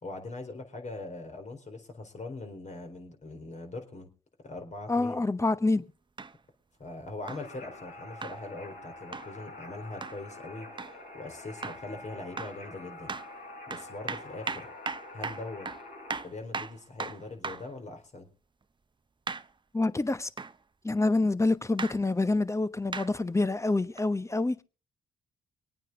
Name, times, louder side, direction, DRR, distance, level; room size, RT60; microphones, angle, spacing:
voice 1, 0.0-4.1 4.4-5.2 6.8-10.7 11.1-13.1 13.7-14.7 15.1-15.7 16.2-18.3, left 2 dB, 45° left, 4.1 m, -41 dB
voice 2, 4.9-5.8 19.7-20.3 20.8-24.6, left 2 dB, 15° left, 1.1 m, -27 dB
sound 1, 6.2-6.3 7.3-7.5 8.2-8.4 9.1-9.3 10.0-10.2 10.8-11.0 11.6-11.9 12.4-12.6 13.1-13.3 13.7-17.7 19.3-19.5 20.4-20.6 21.8-22.0 22.9-23.1 24.0-24.1, right 4 dB, 30° right, 0.8 m, -37 dB
sound 2, 7.4-16.2, left 2 dB, 65° left, 5.7 m, -46 dB
24.5 x 9.1 x 3.9 m
supercardioid pair, 50°, 17 cm